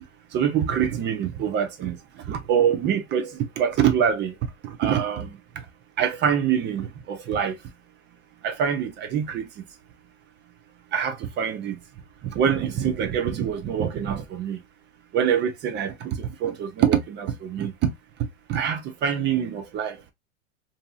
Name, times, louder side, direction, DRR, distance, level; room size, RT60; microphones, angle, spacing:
voice 1, 0.3-2.0 2.3-4.3 4.6-5.4 6.0-7.6 8.4-9.5 10.9-11.8 12.2-14.6 15.1-17.9 18.5-20.0, right 8 dB, 25° right, 0.6 m, -25 dB
2.6 x 2.6 x 2.3 m
hypercardioid pair, 110°, 42 cm